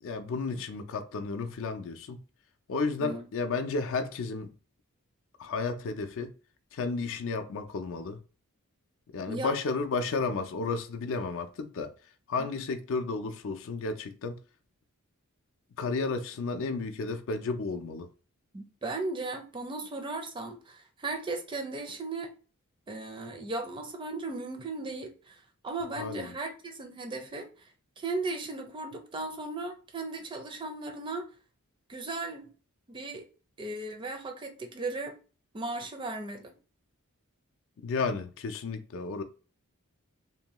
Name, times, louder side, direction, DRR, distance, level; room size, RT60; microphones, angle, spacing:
voice 1, 0.0-2.2 2.7-4.5 5.4-6.3 6.7-8.2 9.1-11.9 12.3-14.4 15.8-18.1 26.0-26.4 37.8-39.2, left 4 dB, 60° left, 0.4 m, -32 dB
voice 2, 18.5-22.3 22.9-27.7 28.0-31.3 31.9-32.5 32.9-33.3 33.6-35.1 35.5-36.5, right 3 dB, 20° right, 0.4 m, -36 dB
2.6 x 2.2 x 2.9 m
head